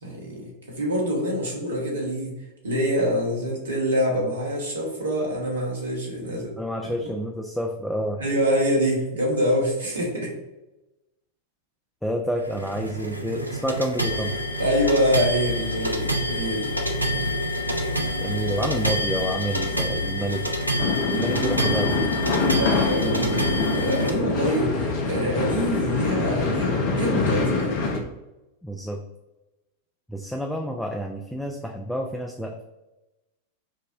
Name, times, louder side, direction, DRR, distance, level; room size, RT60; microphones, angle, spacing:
voice 1, 0.0-2.3 2.6-6.5 7.0-7.1 8.2-10.3 14.6-16.7 21.1-21.4 22.5-23.5 23.7-27.8, equal, 70° right, -1 dB, 1.1 m, -25 dB
voice 2, 6.6-8.2 12.0-14.3 18.2-20.4 21.2-22.0 28.6-29.0 30.1-32.6, equal, ahead, 1 dB, 0.3 m, -29 dB
sound 1, 12.4-24.1, equal, 90° right, 0.4 m, -27 dB
sound 2, 20.8-28.0, left 4 dB, 45° left, 0.6 m, -25 dB
5.3 x 2.1 x 2.5 m, 1.0 s
figure-of-eight pair, 90°, 0 cm